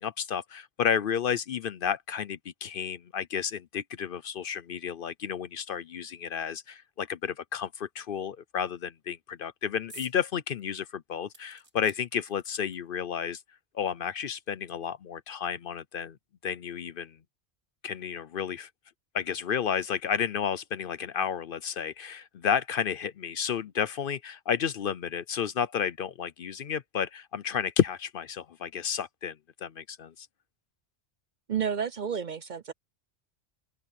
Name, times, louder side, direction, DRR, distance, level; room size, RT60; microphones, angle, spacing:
voice 1, 0.0-13.4 13.7-16.2 16.4-17.2 17.8-18.7 19.1-29.4 29.6-30.3, left 8 dB, 60° left, 0.7 m, -31 dB
sound 1, 9.9-10.2 10.6-10.7 11.3-13.0 13.9-14.0 14.2-14.3, right 1 dB, 75° right, 7.2 m, -51 dB
voice 2, 31.5-32.7, right 7 dB, 50° right, 0.7 m, -31 dB
omnidirectional pair, 1.2 m